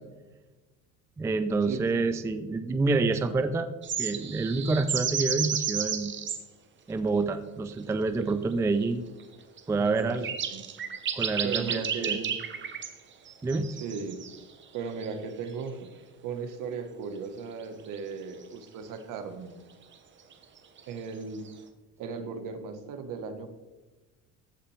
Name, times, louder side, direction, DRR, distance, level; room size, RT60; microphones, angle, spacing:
voice 1, 1.2-3.7 4.0-6.1 6.9-9.1 9.7-10.3 11.1-12.2 13.4-13.7, right 3 dB, 10° right, 10 dB, 0.3 m, -27 dB
sound 1, 3.8-6.4 8.2-8.3 9.6-9.7 10.1-12.9 13.3-14.6 15.0-15.1 17.6-17.7 17.9-18.0 20.3-20.8, right 7 dB, 35° right, 0.9 m, -32 dB
voice 2, 9.8-10.2 10.5-10.7 11.4-12.4 13.7-14.2 14.7-15.9 16.2-19.6 20.9-21.5 22.0-23.5, right 5 dB, 65° right, 8 dB, 1.3 m, -37 dB
14.5 x 5.8 x 3.3 m, 1.2 s
cardioid pair, 125°, 35 cm